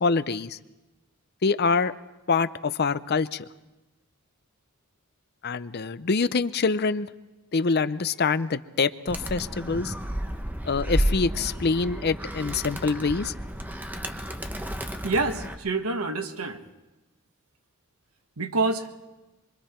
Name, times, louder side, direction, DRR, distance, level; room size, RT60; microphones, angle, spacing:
voice 1, 0.0-0.6 1.4-1.9 2.3-3.4 5.4-7.1 7.5-9.9 10.7-13.3, left 4 dB, 50° left, 14 dB, 0.6 m, -25 dB
Animal, 9.1-15.5, right 1 dB, 10° right, 1.0 m, -31 dB
voice 2, 15.0-16.6 18.4-18.9, right 3 dB, 85° right, 6 dB, 1.5 m, -27 dB
24.5 x 24.0 x 4.5 m, 1.1 s
head